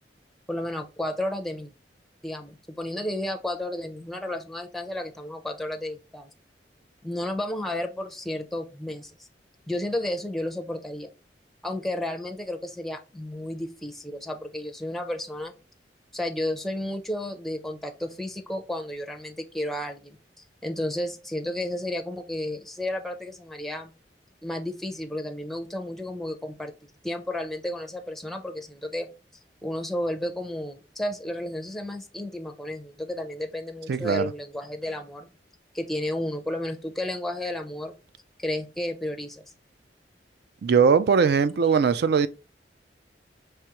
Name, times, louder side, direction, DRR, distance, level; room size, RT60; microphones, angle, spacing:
voice 1, 0.5-1.7 2.2-6.3 7.0-9.1 9.7-11.1 11.6-15.6 16.1-20.2 20.6-23.9 24.4-26.7 27.0-29.1 29.6-35.3 35.7-37.9 38.4-39.5, left 1 dB, ahead, 0.5 m, -32 dB
voice 2, 33.9-34.3 40.6-42.3, right 6 dB, 60° right, 0.4 m, -20 dB
4.8 x 3.3 x 2.9 m
head